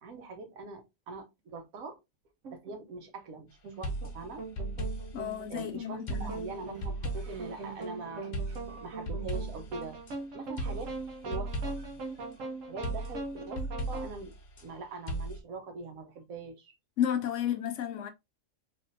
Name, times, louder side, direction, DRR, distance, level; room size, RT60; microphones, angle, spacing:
voice 1, 0.0-2.0 2.5-4.4 5.5-10.0 10.3-11.9 12.7-14.3 14.6-16.7, right 3 dB, 90° right, 1.2 m, -43 dB
sound 1, 2.4-2.8 3.6-14.1, right 3 dB, 70° right, 1.2 m, -41 dB
sound 2, 3.8-5.7 6.1-7.5 8.3-10.1 10.6-12.0 12.8-14.7 15.1-15.4, right 1 dB, 45° left, 0.7 m, -37 dB
voice 2, 5.1-6.3 17.0-18.1, left 10 dB, 70° left, 0.9 m, -32 dB
3.5 x 2.5 x 2.5 m
omnidirectional pair, 1.4 m